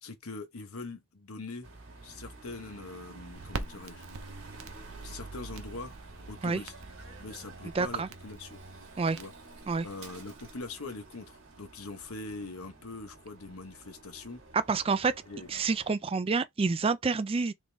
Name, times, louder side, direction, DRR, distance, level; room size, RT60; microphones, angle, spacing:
voice 1, 0.0-1.7 2.0-4.1 5.0-5.9 6.3-6.7 7.2-8.6 9.1-9.3 9.8-14.4 15.3-15.6, left 3 dB, 85° left, 1.1 m, -42 dB
sound 1, 1.6-15.9, right 3 dB, 65° right, 1.8 m, -49 dB
Crackle, 3.4-10.7, right 3 dB, 80° right, 0.8 m, -46 dB
voice 2, 7.8-8.1 9.0-9.2 9.7-9.9 14.5-15.1 15.5-17.5, right 4 dB, 25° right, 0.3 m, -28 dB
3.8 x 3.6 x 3.4 m
head